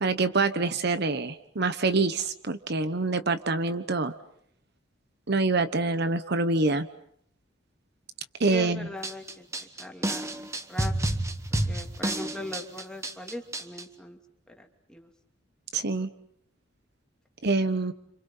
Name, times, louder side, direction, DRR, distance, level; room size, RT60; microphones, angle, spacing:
voice 1, 0.0-4.1 5.3-6.9 8.4-8.9 15.7-16.1 17.4-17.9, right 3 dB, 55° right, 10 dB, 1.1 m, -26 dB
voice 2, 8.5-10.3 10.7-10.9 11.7-14.2 14.5-15.1, left 1 dB, 5° left, 2 dB, 2.8 m, -40 dB
sound 1, 9.0-13.8, right 1 dB, 15° right, 1.2 m, -30 dB
30.0 x 27.5 x 5.7 m, 0.69 s
head